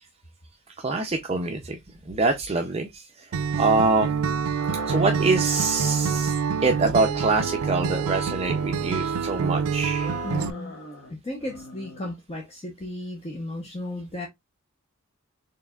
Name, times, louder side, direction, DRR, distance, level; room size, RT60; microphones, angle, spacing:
voice 1, 0.8-1.8 2.1-3.3 3.6-4.1 4.9-6.4 6.6-10.1, right 3 dB, 30° right, 0.5 m, -25 dB
Acoustic guitar, 3.3-10.5, right 6 dB, 85° right, 0.4 m, -26 dB
sound 1, 4.5-6.3 6.6-8.1 8.5-9.5 9.9-11.1 11.4-12.1, left 2 dB, 55° left, 1.1 m, -41 dB
voice 2, 10.2-10.8 11.1-14.3, left 1 dB, 30° left, 0.8 m, -35 dB
4.6 x 3.2 x 2.3 m
head